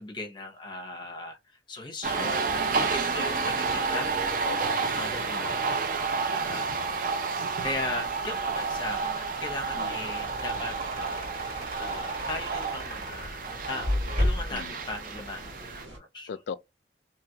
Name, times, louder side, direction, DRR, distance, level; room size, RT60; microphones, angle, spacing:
voice 1, 0.0-4.4 4.9-6.8 7.6-16.4, left 2 dB, 25° left, 0.8 m, -38 dB
sound 1, 2.0-15.8, right 4 dB, 50° right, 0.5 m, -30 dB
voice 2, 3.2-3.5 4.4-4.8 9.7-9.9 14.5-14.7 16.3-16.6, left 6 dB, 65° left, 0.3 m, -38 dB
Water, 7.6-16.0, right 1 dB, 85° right, 1.3 m, -46 dB
sound 2, 9.6-14.6, left 1 dB, 65° right, 2.0 m, -33 dB
2.9 x 2.4 x 2.8 m
head